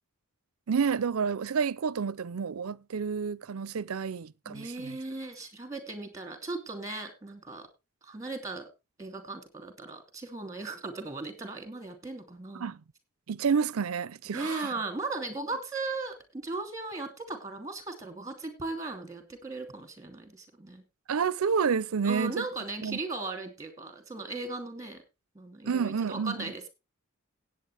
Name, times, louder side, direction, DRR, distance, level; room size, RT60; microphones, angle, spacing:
voice 1, 0.7-5.0 12.5-12.8 13.3-14.7 21.1-22.5 22.8-23.0 25.6-26.5, right 6 dB, 85° right, 0.5 m, -29 dB
voice 2, 4.5-7.7 8.0-8.7 9.0-12.7 14.3-20.8 22.0-25.0 25.3-26.7, right 3 dB, 15° right, 2.8 m, -37 dB
16.5 x 8.8 x 3.3 m
head